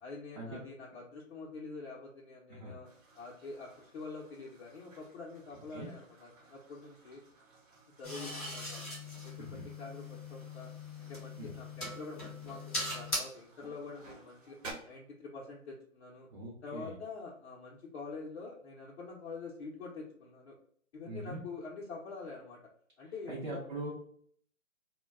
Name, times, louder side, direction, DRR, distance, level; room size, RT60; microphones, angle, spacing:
voice 1, 0.0-2.9 3.1-7.2 8.0-8.9 9.2-10.7 11.0-14.6 14.8-16.3 16.6-20.6 20.9-22.6 23.0-23.6, left 3 dB, 50° left, -4 dB, 0.7 m, -46 dB
sound 1, 2.8-14.7, right 3 dB, 65° right, 0.9 m, -56 dB
sound 2, 8.0-13.2, left 2 dB, 5° left, 0.4 m, -41 dB
voice 2, 16.3-16.9 21.1-21.4 23.3-23.9, right 1 dB, 35° right, -5 dB, 0.6 m, -41 dB
2.2 x 2.2 x 3.3 m, 0.62 s
hypercardioid pair, 145°, 42 cm